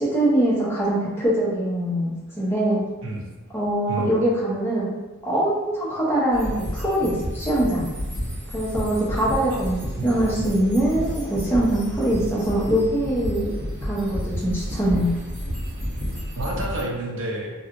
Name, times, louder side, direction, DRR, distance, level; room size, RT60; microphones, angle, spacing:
voice 1, 0.0-2.8 3.5-4.9 5.2-7.9 8.5-13.5 13.8-15.1, right 1 dB, 10° left, -7 dB, 0.8 m, -23 dB
sound 1, 6.3-16.8, equal, 40° right, 1.3 m, -31 dB
voice 2, 16.4-17.5, right 1 dB, 60° right, -2 dB, 0.6 m, -29 dB
3.1 x 2.8 x 2.6 m, 1.1 s
head